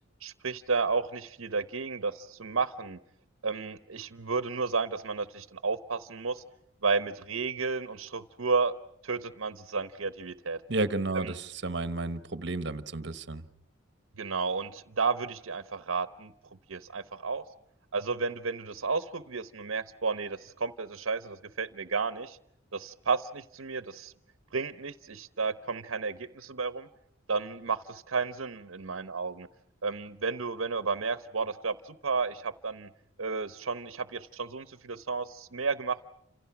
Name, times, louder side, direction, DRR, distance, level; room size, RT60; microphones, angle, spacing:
voice 1, 0.2-3.0 3.4-6.4 6.8-8.7 9.0-10.6 11.1-11.3 14.2-16.3 16.7-17.4 17.9-22.4 22.7-24.1 24.5-26.9 27.3-29.5 29.8-32.9 33.2-36.0, right 4 dB, 90° right, 11 dB, 0.9 m, -32 dB
voice 2, 10.7-13.4, right 2 dB, 60° right, 11 dB, 1.3 m, -32 dB
29.5 x 27.5 x 6.0 m, 0.72 s
head